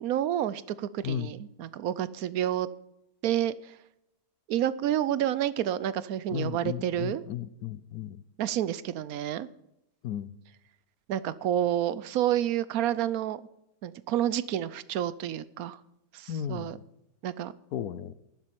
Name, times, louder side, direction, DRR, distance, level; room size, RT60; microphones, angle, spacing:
voice 1, 0.0-2.7 3.2-3.5 4.5-7.2 8.4-9.5 11.1-13.4 13.8-15.8 16.1-16.8 17.2-17.5, right 11 dB, 70° right, 17 dB, 1.0 m, -29 dB
voice 2, 6.3-8.2 10.0-10.3 16.3-16.8 17.7-18.1, left 9 dB, 70° left, 15 dB, 1.2 m, -34 dB
11.0 x 7.5 x 8.6 m, 0.84 s
omnidirectional pair, 1.7 m